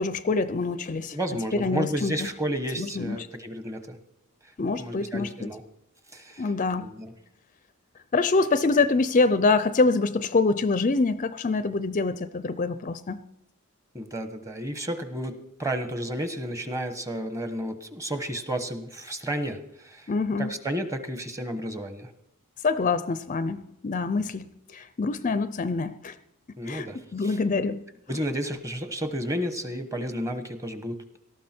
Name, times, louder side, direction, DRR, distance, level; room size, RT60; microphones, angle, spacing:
voice 1, 0.0-1.2 1.5-2.2 2.8-3.2 4.6-5.5 6.4-6.9 8.1-13.2 20.1-20.5 22.6-26.1 26.7-26.9 27.1-27.8, left 3 dB, 35° left, 13 dB, 0.5 m, -25 dB
voice 2, 1.1-4.0 4.8-5.6 6.1-6.5 6.8-7.1 13.9-20.1 20.4-22.1 26.6-27.4 28.1-31.0, right 1 dB, 15° right, 9 dB, 1.1 m, -32 dB
18.0 x 13.0 x 4.4 m, 0.81 s
head